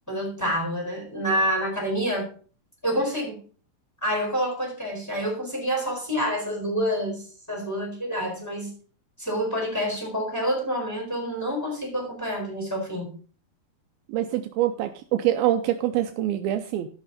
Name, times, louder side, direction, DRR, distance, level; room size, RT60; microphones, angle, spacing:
voice 1, 0.1-2.3 2.8-3.4 4.0-8.7 9.2-13.2, equal, 5° left, -1 dB, 4.1 m, -28 dB
voice 2, 14.1-16.9, right 12 dB, 80° right, 8 dB, 2.4 m, -25 dB
16.0 x 5.9 x 4.1 m, 0.40 s
omnidirectional pair, 4.5 m